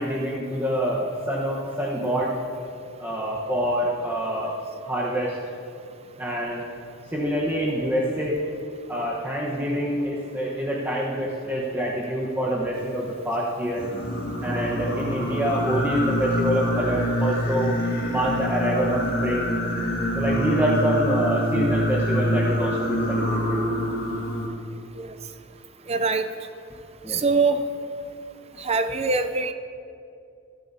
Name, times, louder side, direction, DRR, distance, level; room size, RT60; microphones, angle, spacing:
voice 1, 0.0-2.3 3.0-4.6 4.8-5.4 6.2-6.7 7.1-8.4 8.9-13.9 14.4-17.8 18.1-19.5 20.1-23.6 27.0-27.2, equal, 10° right, -5 dB, 1.1 m, -26 dB
Singing, 13.8-24.5, equal, 50° left, 2.0 m, -25 dB
voice 2, 25.9-26.3 27.1-27.6 28.6-29.5, right 4 dB, 30° right, 8 dB, 0.6 m, -23 dB
20.0 x 13.0 x 2.8 m, 2.5 s
head